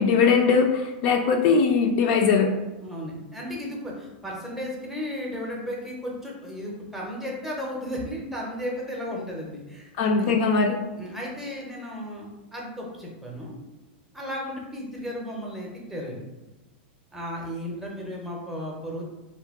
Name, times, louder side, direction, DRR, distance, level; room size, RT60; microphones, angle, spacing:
voice 1, 0.0-2.5 10.0-10.8, left 5 dB, 45° left, 2 dB, 0.3 m, -20 dB
voice 2, 2.8-10.3 11.0-13.5 14.1-16.2 17.1-19.1, equal, 5° right, -3 dB, 0.6 m, -34 dB
2.7 x 2.2 x 3.4 m, 1.1 s
supercardioid pair, 145°, 6 cm